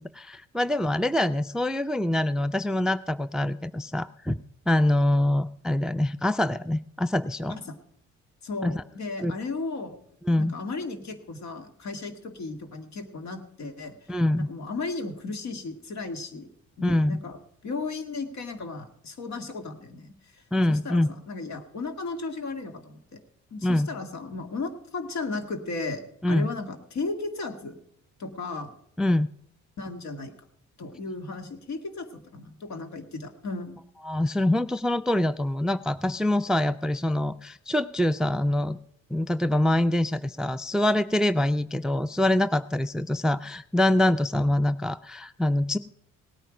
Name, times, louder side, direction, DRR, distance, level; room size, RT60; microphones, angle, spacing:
voice 1, 0.0-4.4 4.7-7.6 8.6-8.8 9.2-9.3 10.3-10.5 14.1-14.5 16.8-17.2 20.5-21.1 23.6-23.9 26.2-26.5 29.0-29.3 34.1-38.8 39.1-45.8, left 1 dB, ahead, 15 dB, 0.4 m, -25 dB
voice 2, 8.4-10.0 10.4-14.0 14.4-16.5 16.8-17.4 17.6-20.4 20.7-23.2 23.5-26.0 26.3-27.8 28.2-28.7 29.8-30.3 30.8-33.8, left 3 dB, 65° left, 7 dB, 2.1 m, -35 dB
18.0 x 9.2 x 5.0 m, 0.71 s
cardioid pair, 90°, 30 cm